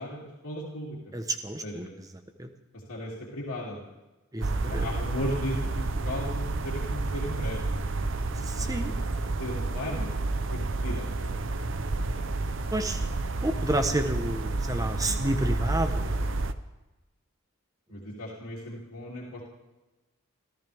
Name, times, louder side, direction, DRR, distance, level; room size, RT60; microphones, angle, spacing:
voice 1, 0.0-1.0 1.6-2.0 2.9-3.9 4.5-7.8 8.6-8.9 9.4-11.3 11.7-12.3 15.0-15.1 17.9-19.4, left 1 dB, 75° left, -5 dB, 3.2 m, -37 dB
voice 2, 1.1-2.5 4.3-4.9 8.3-8.9 12.7-13.1 13.4-16.3, right 1 dB, 15° right, 7 dB, 1.1 m, -30 dB
sound 1, 4.4-16.5, right 2 dB, 60° right, 0.8 m, -30 dB
27.5 x 14.5 x 3.6 m, 1.1 s
head